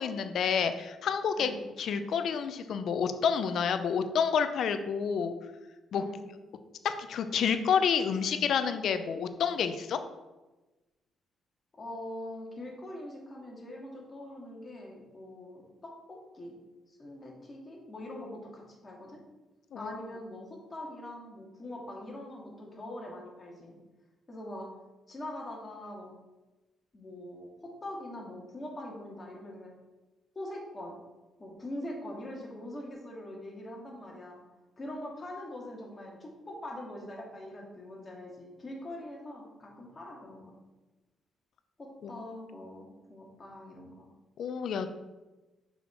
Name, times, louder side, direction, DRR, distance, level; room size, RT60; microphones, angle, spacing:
voice 1, 0.0-1.5 1.8-5.3 5.9-6.0 6.8-10.0 19.7-20.0 42.0-42.1 44.4-44.9, left 7 dB, 65° left, 9 dB, 0.6 m, -29 dB
voice 2, 5.9-6.3 11.7-16.6 16.9-19.2 19.8-23.7 24.3-24.7 25.1-26.2 26.9-29.7 30.4-31.0 31.4-34.4 34.8-40.5 41.8-44.1, left 1 dB, 30° left, -1 dB, 2.1 m, -43 dB
5.9 x 5.6 x 4.5 m, 1.1 s
cardioid pair, 90°, 0 cm